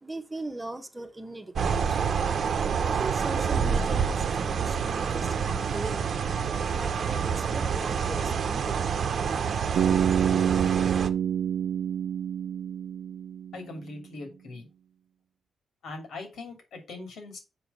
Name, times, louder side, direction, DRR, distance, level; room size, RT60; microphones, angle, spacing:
voice 1, 0.0-2.0 2.3-2.4 2.8-9.3, right 2 dB, 15° right, 1.2 m, -40 dB
sound 1, 1.6-11.1, right 6 dB, 60° right, 0.9 m, -27 dB
Bass guitar, 9.8-13.7, right 9 dB, 85° right, 0.4 m, -27 dB
voice 2, 13.5-14.7 15.8-17.4, left 3 dB, 80° left, 3.0 m, -41 dB
7.0 x 5.0 x 5.6 m
cardioid pair, 100°, 0 cm